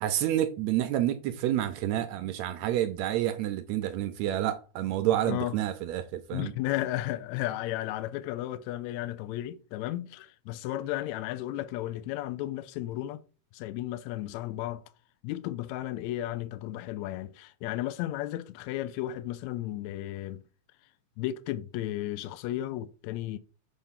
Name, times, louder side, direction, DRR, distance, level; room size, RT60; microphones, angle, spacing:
voice 1, 0.0-6.5, right 12 dB, 75° right, 1.7 m, -29 dB
voice 2, 6.3-13.2 13.5-14.8 15.2-20.4 21.2-23.4, left 14 dB, 80° left, 1.8 m, -34 dB
7.0 x 3.4 x 5.6 m
omnidirectional pair, 3.4 m